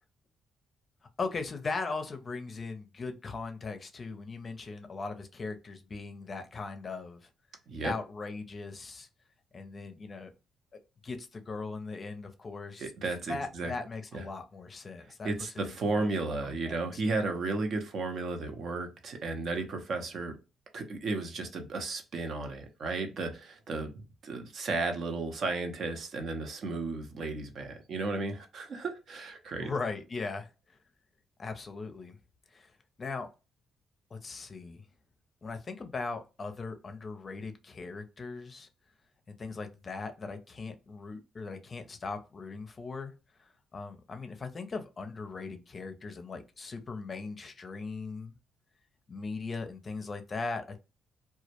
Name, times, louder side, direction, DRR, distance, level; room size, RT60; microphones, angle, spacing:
voice 1, 1.2-7.3 7.8-9.1 9.5-10.3 10.7-12.9 13.3-15.3 15.6-16.1 16.4-17.0 29.6-30.5 31.4-32.2 32.5-32.7 33.0-33.3 34.1-34.8 35.4-38.7 39.3-43.1 43.4-48.4 49.1-50.8, left 4 dB, 35° left, 0.5 m, -39 dB
voice 2, 12.8-13.7 14.1-14.2 15.2-20.4 20.7-29.7, right 3 dB, 60° right, 0.6 m, -34 dB
2.2 x 2.0 x 2.8 m
cardioid pair, 90°, 0 cm